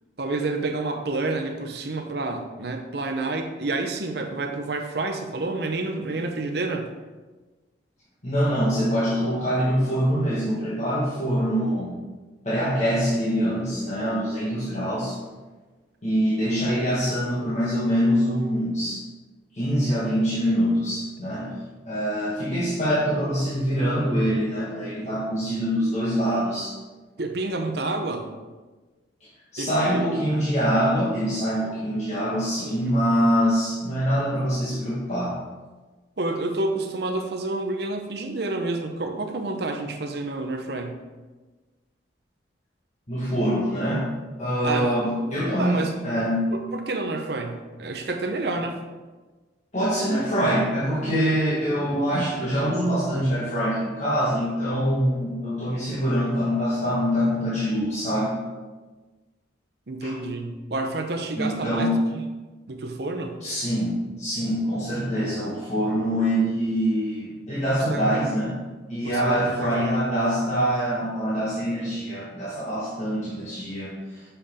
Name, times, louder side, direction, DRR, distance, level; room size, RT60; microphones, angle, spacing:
voice 1, 0.2-6.9 27.2-28.3 29.6-30.1 36.2-40.9 44.6-45.2 45.6-46.0 46.5-48.8 59.9-62.0 62.7-63.4 67.7-68.2 69.0-69.9, right 2 dB, 60° right, 4 dB, 0.8 m, -29 dB
voice 2, 8.2-12.0 12.4-15.2 16.0-19.0 19.5-21.5 21.8-26.8 29.2-35.4 43.1-44.1 44.4-46.5 49.7-58.4 60.0-60.1 61.4-62.1 63.4-68.6 68.9-74.2, equal, 40° left, -9 dB, 1.4 m, -24 dB
7.0 x 5.7 x 3.6 m, 1.3 s
head